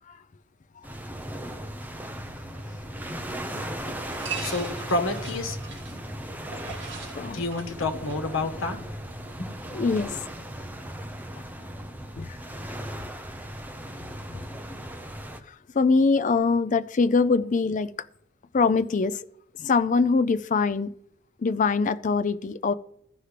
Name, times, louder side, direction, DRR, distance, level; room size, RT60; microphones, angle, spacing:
sound 1, 0.8-15.4, equal, 10° right, 0.7 m, -37 dB
sound 2, 2.1-10.0, right 5 dB, 60° right, 2.0 m, -43 dB
voice 1, 3.8-5.6 7.3-8.8 9.4-9.8, left 2 dB, 85° left, 1.2 m, -30 dB
voice 2, 9.7-10.2 12.2-12.4 15.7-17.9 18.5-19.2 19.6-20.9 21.4-22.7, left 4 dB, 40° left, 0.4 m, -23 dB
15.0 x 5.8 x 3.3 m
head